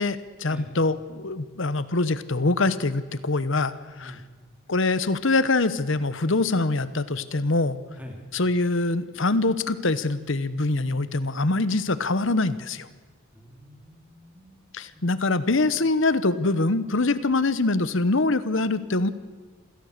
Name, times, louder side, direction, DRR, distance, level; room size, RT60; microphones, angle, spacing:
voice 1, 0.0-4.1 4.7-7.8 8.3-12.9 14.7-19.1, left 2 dB, 60° left, 14 dB, 1.0 m, -24 dB
voice 2, 13.3-14.6 14.9-15.1, equal, 5° right, 2 dB, 2.9 m, -44 dB
27.5 x 17.0 x 6.7 m, 1.4 s
head